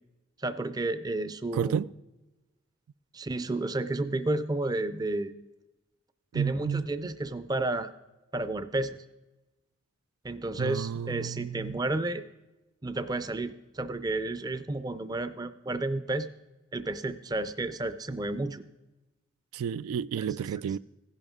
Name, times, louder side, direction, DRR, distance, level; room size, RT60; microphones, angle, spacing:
voice 1, 0.4-1.8 3.1-5.3 6.3-7.9 8.3-9.0 10.2-12.2 12.8-16.3 16.7-18.6 20.2-20.3, right 2 dB, 20° right, 0.4 m, -31 dB
voice 2, 1.5-1.9 6.3-6.8 10.6-11.8 19.5-20.8, right 8 dB, 90° right, 0.3 m, -31 dB
16.0 x 10.5 x 3.6 m
head